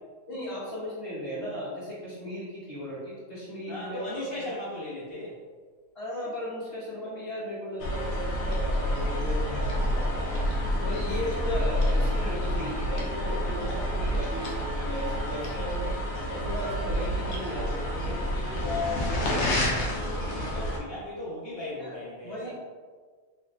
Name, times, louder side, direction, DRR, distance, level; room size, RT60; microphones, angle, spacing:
voice 1, 0.3-4.5 5.9-10.3 10.8-15.9 16.3-18.4 21.8-22.5, equal, 25° left, -9 dB, 1.1 m, -36 dB
voice 2, 3.7-5.4 17.5-19.4 19.7-22.5, left 3 dB, 55° left, -6 dB, 0.8 m, -37 dB
sound 1, 7.8-20.8, equal, 80° left, 1.1 m, -28 dB
3.1 x 2.6 x 3.2 m, 1.5 s
omnidirectional pair, 1.5 m